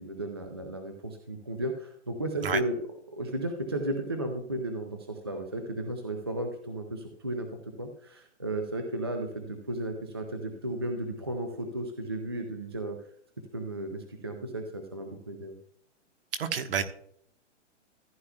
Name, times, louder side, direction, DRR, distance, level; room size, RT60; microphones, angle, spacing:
voice 1, 0.0-2.8 3.1-13.0 13.5-15.6, right 1 dB, 20° right, 4 dB, 0.4 m, -34 dB
voice 2, 16.4-16.8, right 6 dB, 50° right, 8 dB, 1.2 m, -28 dB
15.0 x 9.5 x 2.2 m, 0.66 s
hypercardioid pair, 180°, 37 cm